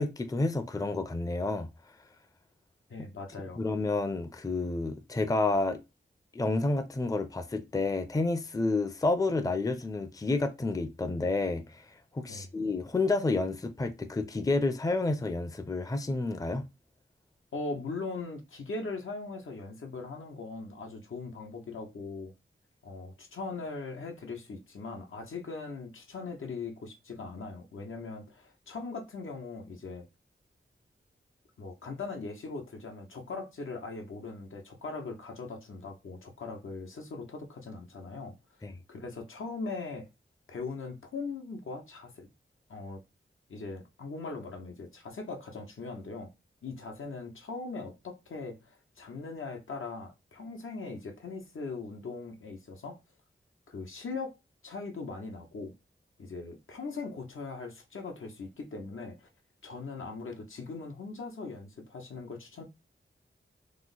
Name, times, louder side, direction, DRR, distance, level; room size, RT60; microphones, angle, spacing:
voice 1, 0.0-1.7 3.6-5.8 6.3-11.8 12.1-16.6 38.6-38.7, left 2 dB, 15° left, 0.5 m, -30 dB
voice 2, 2.9-3.7 12.3-12.5 17.5-22.3 22.8-30.0 31.6-38.4 38.9-40.1 40.5-42.3 42.7-43.0 43.5-46.3 46.6-53.0 53.7-54.4 54.6-55.7 56.2-59.3 59.6-62.6, left 3 dB, 80° left, 0.8 m, -40 dB
3.0 x 2.0 x 3.8 m
wide cardioid pair, 60°, 21 cm